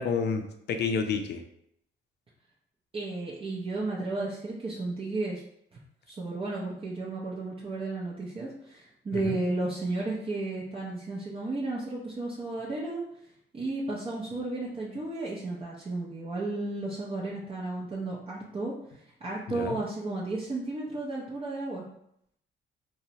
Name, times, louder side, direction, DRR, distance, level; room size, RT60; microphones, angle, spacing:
voice 1, 0.0-1.4 9.1-9.4 19.5-19.8, left 5 dB, 60° left, 6 dB, 0.4 m, -30 dB
voice 2, 2.9-5.4 5.7-5.8 6.1-13.0 13.5-18.7 19.2-21.8, right 2 dB, 30° right, -5 dB, 0.5 m, -33 dB
2.7 x 2.1 x 2.7 m, 0.74 s
cardioid pair, 90°, 20 cm